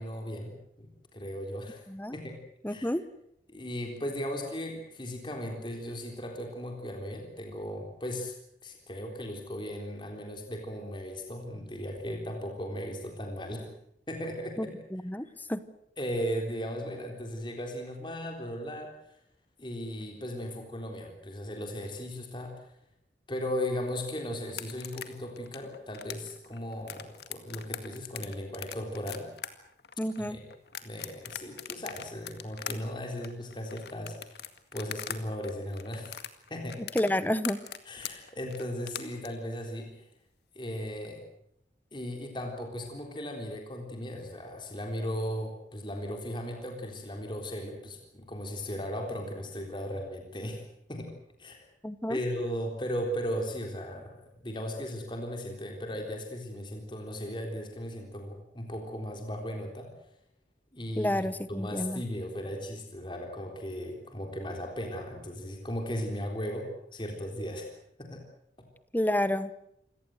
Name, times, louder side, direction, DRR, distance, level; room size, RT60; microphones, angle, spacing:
voice 1, 0.0-1.8 2.1-2.4 2.7-2.9 3.5-8.3 8.6-13.7 14.1-14.8 15.2-15.3 16.0-18.9 19.6-22.5 23.3-29.3 30.2-30.4 30.8-34.5 34.7-36.2 36.5-36.8 37.9-40.0 40.6-41.2 41.9-51.1 51.4-51.6 52.1-59.9 60.7-67.7 68.0-68.2, equal, 25° left, 3 dB, 3.8 m, -37 dB
voice 2, 2.6-3.0 14.6-14.7 14.9-15.6 30.0-30.4 36.9-37.6 51.8-52.2 61.0-62.0 68.9-69.5, left 1 dB, 10° left, 14 dB, 0.9 m, -29 dB
sound 1, 24.5-35.2 35.4-39.3, left 9 dB, 70° left, 2.0 m, -41 dB
28.0 x 18.0 x 7.9 m, 0.75 s
head